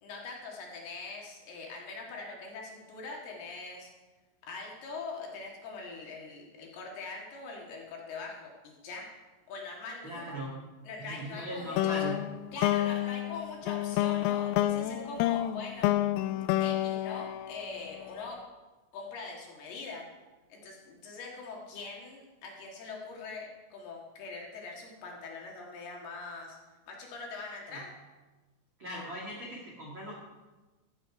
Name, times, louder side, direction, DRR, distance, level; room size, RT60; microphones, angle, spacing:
voice 1, 0.0-3.9 4.4-9.1 9.5-10.1 10.8-12.1 12.5-15.9 16.6-18.4 18.9-20.0 20.5-26.6 26.9-27.9, left 3 dB, 60° left, -1 dB, 3.2 m, -42 dB
voice 2, 10.0-10.5 11.0-12.2 27.7-27.8 28.8-30.2, right 1 dB, 80° right, -4 dB, 1.1 m, -39 dB
sound 1, 11.8-18.2, left 14 dB, 85° left, 3.2 m, -29 dB
15.5 x 8.2 x 4.8 m, 1.2 s
omnidirectional pair, 5.8 m